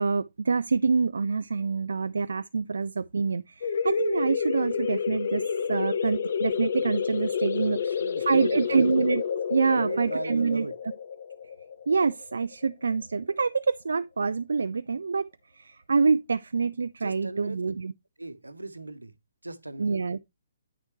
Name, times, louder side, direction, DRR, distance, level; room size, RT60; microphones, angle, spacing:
voice 1, 0.0-5.4 5.7-8.0 8.3-9.2 9.5-10.7 11.9-15.3 15.5-17.9 19.8-20.2, right 4 dB, 70° right, 0.4 m, -26 dB
sound 1, 3.6-12.9, left 6 dB, 55° left, 0.8 m, -29 dB
voice 2, 7.6-8.9 9.7-10.7 17.0-17.6 18.2-19.1 19.4-19.9, right 2 dB, 85° right, 0.9 m, -37 dB
8.9 x 6.3 x 3.1 m
figure-of-eight pair, 130°, 0 cm